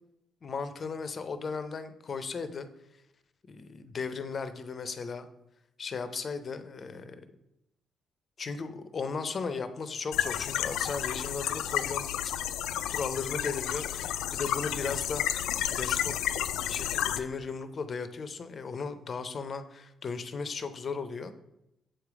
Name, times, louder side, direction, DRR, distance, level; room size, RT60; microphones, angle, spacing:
voice 1, 0.4-2.7 3.5-5.3 5.8-7.2 8.4-12.3 12.9-16.1 16.7-21.3, left 5 dB, 45° left, 10 dB, 0.6 m, -36 dB
sound 1, 10.1-17.2, left 11 dB, 90° left, 0.3 m, -31 dB
7.6 x 3.3 x 4.8 m, 0.87 s
cardioid pair, 90°, 0 cm